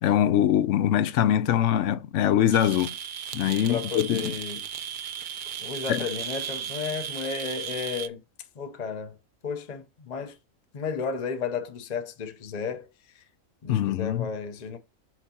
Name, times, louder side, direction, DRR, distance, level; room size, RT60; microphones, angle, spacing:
voice 1, 0.0-2.9 3.3-4.3 5.9-6.0 13.7-14.3, left 10 dB, 70° left, 0.9 m, -23 dB
sound 1, 2.5-8.1, right 9 dB, 65° right, 0.5 m, -35 dB
voice 2, 3.7-4.6 5.5-8.2 8.6-9.2 9.4-10.4 10.7-13.2 13.6-14.8, left 6 dB, 40° left, 0.7 m, -33 dB
6.1 x 5.4 x 2.9 m
omnidirectional pair, 1.4 m